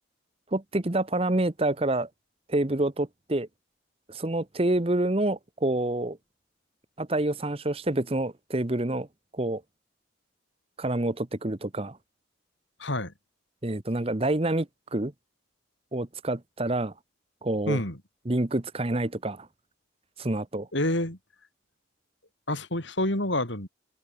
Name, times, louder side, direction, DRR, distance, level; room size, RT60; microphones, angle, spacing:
voice 1, 0.5-2.1 2.5-3.5 4.1-6.2 7.0-9.1 9.3-9.6 10.8-12.0 13.6-15.1 15.9-16.9 17.4-17.8 18.3-19.5 20.2-20.7, right 1 dB, 30° right, 1.0 m, -27 dB
voice 2, 12.8-13.1 17.7-18.0 20.7-21.2 22.5-23.7, left 1 dB, 65° left, 5.5 m, -28 dB
head